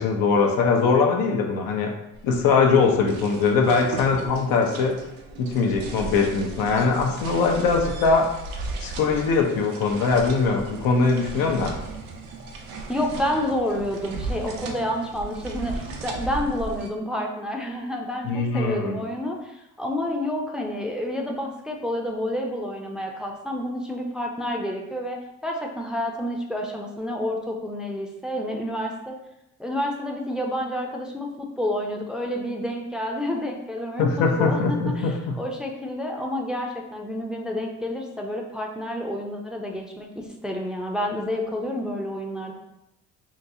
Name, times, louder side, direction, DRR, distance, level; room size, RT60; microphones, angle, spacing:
voice 1, 0.0-1.9 2.2-5.0 5.4-8.3 8.8-11.7 18.2-19.0 34.0-35.4, left 4 dB, 75° left, 2 dB, 0.6 m, -21 dB
sound 1, 2.1-16.9, right 3 dB, 80° right, 0.6 m, -36 dB
voice 2, 12.9-29.2 29.6-42.5, left 1 dB, ahead, 0 dB, 0.5 m, -29 dB
3.9 x 2.3 x 2.7 m, 0.89 s
supercardioid pair, 70°, 34 cm